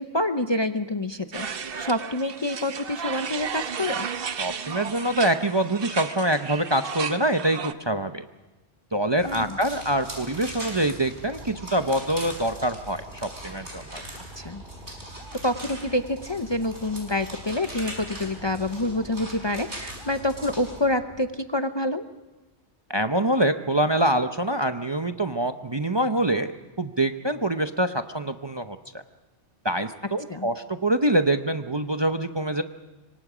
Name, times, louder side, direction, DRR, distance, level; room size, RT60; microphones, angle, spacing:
voice 1, 0.0-4.1 9.2-9.6 14.4-14.6 15.4-22.1 30.3-30.5, left 1 dB, 30° left, 8 dB, 0.7 m, -27 dB
sound 1, 1.3-7.7, right 7 dB, 55° right, 1.0 m, -34 dB
voice 2, 4.4-8.2 8.9-14.0 22.9-26.5 26.8-29.0 29.6-32.6, right 1 dB, 25° right, 7 dB, 0.7 m, -25 dB
sound 2, 9.2-20.8, right 1 dB, 85° right, 5.9 m, -41 dB
sound 3, 11.3-21.3, equal, 50° left, 3.9 m, -48 dB
27.0 x 23.5 x 5.0 m, 1.1 s
omnidirectional pair, 1.2 m